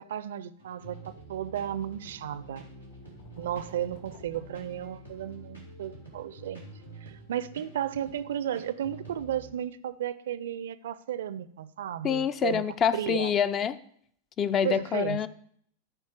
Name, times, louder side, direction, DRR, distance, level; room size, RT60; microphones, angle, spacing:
voice 1, 0.0-2.6 3.4-6.7 7.0-12.6 12.9-13.3 14.6-15.2, right 10 dB, 60° right, 16 dB, 0.4 m, -34 dB
sound 1, 0.6-9.5, right 3 dB, 90° left, 2.7 m, -48 dB
sound 2, 2.6-5.5, left 3 dB, 60° left, 2.0 m, -54 dB
voice 2, 12.0-13.8 14.4-15.3, left 8 dB, 25° left, 15 dB, 0.4 m, -26 dB
13.5 x 4.6 x 4.8 m, 0.63 s
figure-of-eight pair, 90°, 0 cm